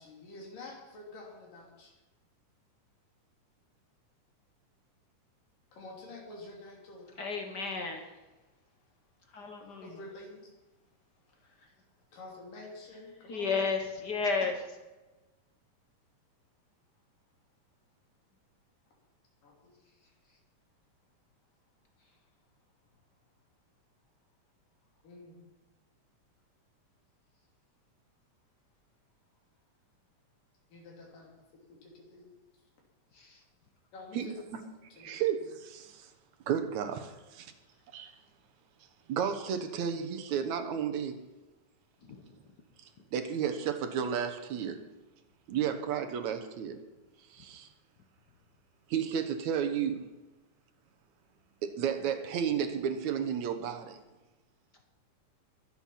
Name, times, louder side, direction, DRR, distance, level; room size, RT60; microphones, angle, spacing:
voice 1, 0.0-1.9 5.7-7.2 9.8-10.5 12.1-13.7 19.4-19.7 25.0-25.4 30.7-31.3 31.7-32.3 33.9-34.4 34.9-35.2, left 2 dB, 85° left, -1 dB, 4.8 m, -48 dB
voice 2, 7.2-8.1 9.3-10.0 13.3-14.5 33.1-33.4 42.0-42.4, left 4 dB, 65° left, 4 dB, 1.0 m, -33 dB
voice 3, 34.1-34.6 35.0-36.1 36.5-37.5 37.9-38.2 39.1-41.2 42.8-44.8 45.5-46.8 47.3-47.7 48.9-50.1 51.6-54.0, right 8 dB, 65° right, 8 dB, 2.3 m, -33 dB
22.5 x 8.0 x 5.8 m, 1.1 s
omnidirectional pair, 3.7 m